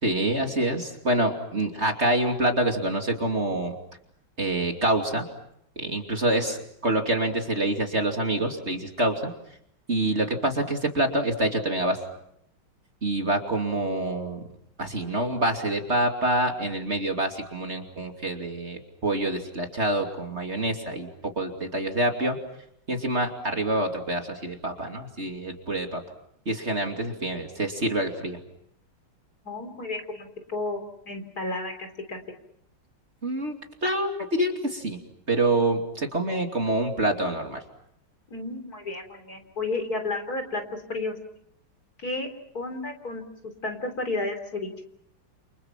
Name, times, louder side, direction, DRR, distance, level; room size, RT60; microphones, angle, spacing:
voice 1, 0.0-3.7 4.4-5.2 5.8-9.2 9.9-12.0 13.0-14.4 14.8-21.1 21.4-22.4 22.9-26.0 26.5-28.4 33.2-33.5 33.8-35.0 35.3-37.6, right 1 dB, 30° right, 3 dB, 3.0 m, -26 dB
voice 2, 29.4-32.2 38.3-41.1 42.0-42.3 42.5-43.2 43.6-44.7, left 2 dB, 45° left, 7 dB, 4.0 m, -32 dB
29.5 x 29.5 x 5.9 m, 0.74 s
omnidirectional pair, 2.3 m